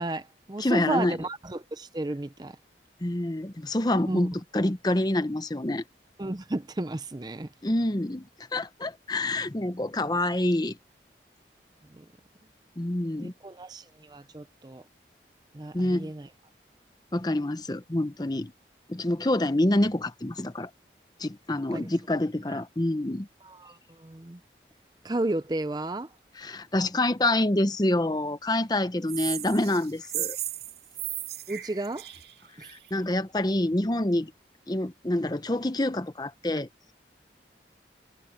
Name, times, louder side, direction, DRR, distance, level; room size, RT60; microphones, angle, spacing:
voice 1, 0.0-2.6 4.1-4.3 6.2-7.5 11.9-12.0 13.2-14.8 15.5-16.3 21.7-21.9 22.5-22.6 23.4-24.4 25.0-26.1 31.5-32.1 32.6-32.7, right 2 dB, 25° right, 0.5 m, -33 dB
voice 2, 0.6-1.2 3.0-5.8 7.6-10.8 12.8-13.3 15.7-16.1 17.1-18.5 18.9-20.7 21.2-23.3 26.4-30.4 32.7-34.3 34.7-36.7, left 1 dB, 20° left, 0.8 m, -27 dB
sound 1, 29.1-32.9, right 13 dB, 65° right, 2.5 m, -35 dB
head